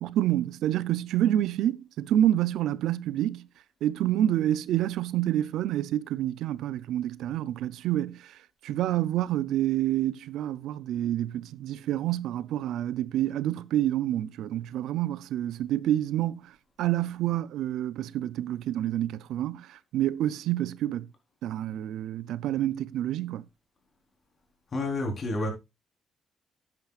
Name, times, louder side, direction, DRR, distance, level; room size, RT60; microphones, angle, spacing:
voice 1, 0.0-3.5 3.8-21.1 21.4-23.5, right 12 dB, 85° right, 0.5 m, -28 dB
voice 2, 24.7-25.5, left 2 dB, 45° left, 4.0 m, -29 dB
11.5 x 9.0 x 2.4 m
cardioid pair, 90°, 0 cm